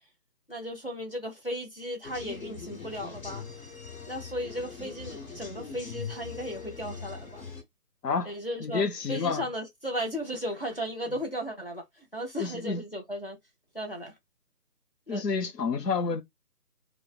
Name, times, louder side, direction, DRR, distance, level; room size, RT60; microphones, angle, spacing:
voice 1, 0.5-3.5 4.1-7.5 8.2-13.4 13.7-14.1 15.1-15.2, equal, 35° left, 0.6 m, -35 dB
sound 1, 2.0-7.6, left 5 dB, 55° left, 1.2 m, -41 dB
voice 2, 8.6-9.4 12.4-12.8 15.1-16.2, left 5 dB, 80° left, 0.7 m, -29 dB
3.0 x 2.1 x 2.3 m
figure-of-eight pair, 180°, 48 cm